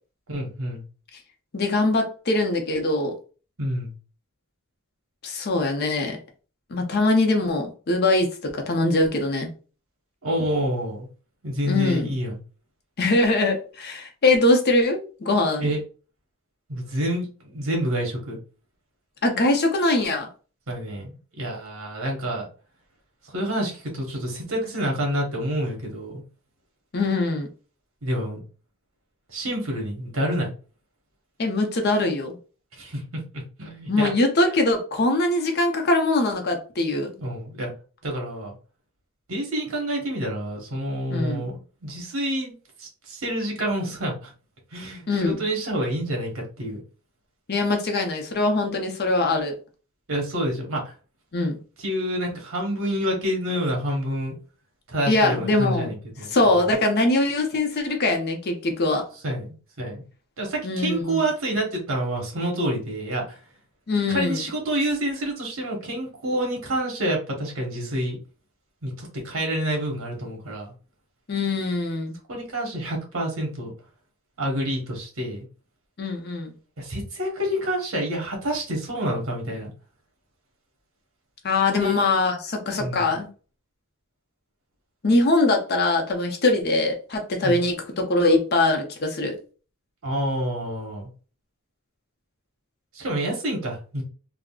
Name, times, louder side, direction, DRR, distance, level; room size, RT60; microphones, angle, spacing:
voice 1, 0.3-0.8 3.6-3.9 10.2-11.1 11.4-12.4 15.6-15.8 16.7-18.4 20.7-22.5 23.2-26.2 28.0-28.4 29.3-30.5 32.8-34.1 37.2-37.7 38.0-38.5 39.3-41.6 41.8-42.5 42.8-44.3 44.7-45.0 45.4-46.8 50.1-50.9 51.8-54.4 54.9-56.6 59.2-59.5 59.8-60.0 60.4-63.4 64.1-68.2 68.8-70.7 72.3-73.7 74.4-75.5 76.8-79.7 81.8-82.0 82.8-83.1 87.4-87.6 90.0-91.1 92.9-94.0, equal, 65° right, 0 dB, 1.1 m, -28 dB
voice 2, 1.5-3.1 5.2-6.2 6.7-9.5 11.6-12.1 13.0-15.7 19.2-20.3 26.9-27.5 31.4-32.4 33.9-37.1 41.1-41.5 45.1-45.4 47.5-49.6 51.3-51.6 55.1-56.0 56.3-59.0 60.6-61.3 63.9-64.5 71.3-72.2 76.0-76.5 81.4-83.3 85.0-89.4, left 2 dB, 50° left, 4 dB, 0.6 m, -22 dB
3.6 x 2.1 x 2.3 m, 0.37 s
head